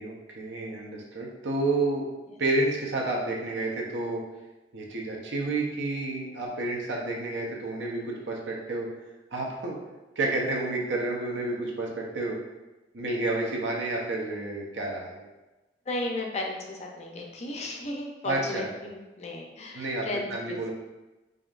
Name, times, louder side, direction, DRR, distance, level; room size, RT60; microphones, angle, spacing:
voice 1, 0.0-2.1 2.4-4.2 4.7-8.9 9.3-9.8 10.2-12.4 12.9-15.3 18.2-18.7 19.7-20.7, right 2 dB, 85° right, -2 dB, 0.8 m, -30 dB
voice 2, 15.9-20.3, left 2 dB, 40° left, 1 dB, 0.5 m, -34 dB
5.0 x 2.6 x 2.4 m, 1.1 s
head